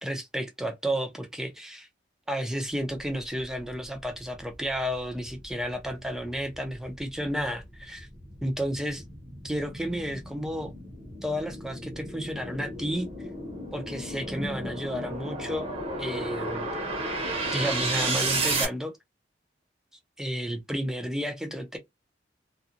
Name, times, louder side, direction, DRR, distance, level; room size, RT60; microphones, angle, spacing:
voice 1, 0.0-1.9 2.3-8.1 8.4-9.0 9.4-10.7 11.2-13.1 13.7-15.7 16.0-16.7 17.5-18.9 20.2-21.8, equal, 5° right, 0.6 m, -32 dB
sound 1, 4.7-18.7, right 2 dB, 35° right, 0.9 m, -33 dB
2.5 x 2.2 x 2.8 m
head